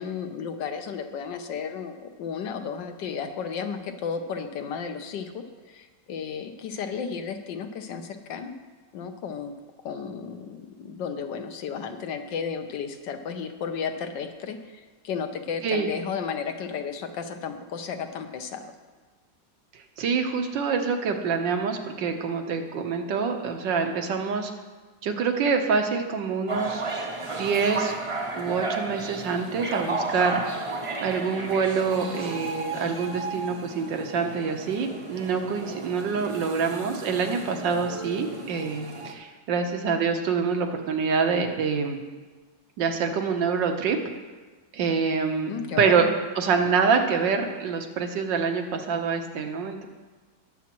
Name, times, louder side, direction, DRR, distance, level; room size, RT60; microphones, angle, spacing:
voice 1, 0.0-8.5 8.9-9.5 9.8-14.8 15.0-18.7 45.5-46.1, left 6 dB, 80° left, 7 dB, 1.5 m, -33 dB
voice 2, 19.7-24.5 25.0-26.8 27.3-27.9 28.4-30.4 31.0-42.0 42.8-44.0 44.7-45.5 45.8-46.1 46.4-49.9, right 5 dB, 85° right, 4 dB, 1.6 m, -26 dB
sound 1, 26.5-39.1, right 3 dB, 35° right, 0.5 m, -34 dB
19.0 x 7.2 x 3.0 m, 1.3 s
omnidirectional pair, 1.9 m